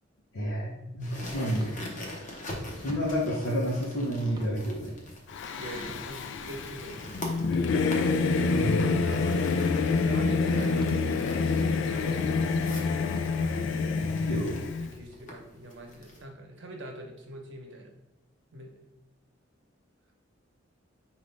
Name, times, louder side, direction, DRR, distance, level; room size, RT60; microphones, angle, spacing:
voice 1, 0.3-1.8 2.7-4.9 8.6-9.0 14.0-14.5, equal, 85° left, -5 dB, 0.8 m, -30 dB
sound 1, 1.0-16.2, left 1 dB, 40° left, 0.8 m, -44 dB
sound 2, 1.6-1.7 2.9-3.1 4.4-4.5 5.9-6.1 7.5-7.6 9.1-9.3 10.8-11.0 12.1-12.2 13.1-13.3, right 1 dB, 20° right, 0.5 m, -42 dB
Singing / Musical instrument, 5.3-14.9, left 4 dB, 65° left, 0.3 m, -27 dB
voice 2, 5.6-7.2 8.5-12.4 13.9-14.5 14.8-17.9 18.5-18.7, right 1 dB, 65° right, 1 dB, 0.9 m, -43 dB
5.1 x 2.6 x 3.4 m, 0.92 s
head